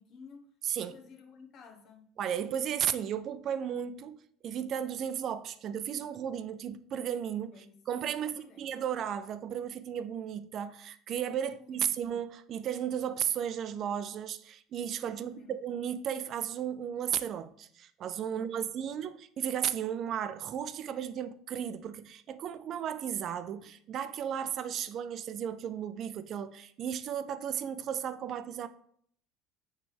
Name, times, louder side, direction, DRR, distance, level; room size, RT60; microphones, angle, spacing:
voice 1, 0.0-0.5 0.7-2.1 7.5-7.8 8.1-8.7 11.5-12.0 15.1-15.5 18.3-19.0, left 5 dB, 50° left, 1.0 m, -54 dB
voice 2, 0.6-1.0 2.2-4.2 4.4-28.7, right 9 dB, 45° right, 0.4 m, -34 dB
9.1 x 3.3 x 3.4 m
supercardioid pair, 110°, 0 cm